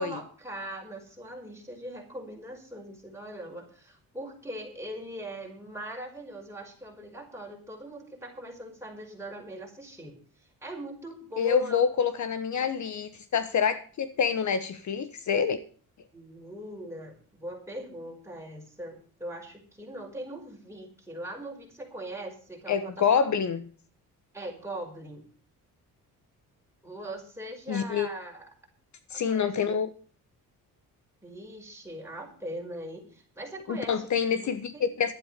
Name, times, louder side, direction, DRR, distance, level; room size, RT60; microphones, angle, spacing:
voice 1, 0.0-10.2 10.6-11.8 16.1-23.0 24.3-25.2 26.8-28.5 29.1-29.8 31.2-34.1 34.3-34.9, right 1 dB, 10° right, 0 dB, 5.6 m, -40 dB
voice 2, 11.4-15.6 22.7-23.7 27.7-28.1 29.1-29.9 33.7-35.1, left 7 dB, 55° left, 13 dB, 1.3 m, -27 dB
12.5 x 8.9 x 6.7 m, 0.41 s
cardioid pair, 100°, 35 cm